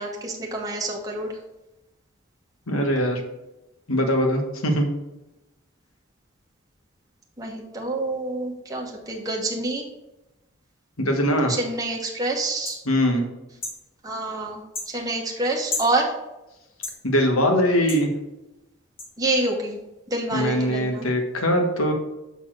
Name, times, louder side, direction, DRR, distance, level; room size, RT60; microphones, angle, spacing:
voice 1, 0.0-1.3 7.4-9.9 11.5-12.8 14.0-16.1 19.2-19.8 20.1-21.1, right 2 dB, 15° right, -1 dB, 1.1 m, -27 dB
voice 2, 2.7-3.2 3.9-4.9 11.0-11.5 12.9-13.3 17.0-18.1 20.3-21.9, equal, 80° left, 3 dB, 1.3 m, -21 dB
sound 1, 12.7-12.8 13.6-13.8 14.7-14.9 15.7-15.9 16.8-17.0 17.9-18.0 19.0-19.1, left 3 dB, 25° left, 1.1 m, -31 dB
6.9 x 4.2 x 6.2 m, 0.96 s
head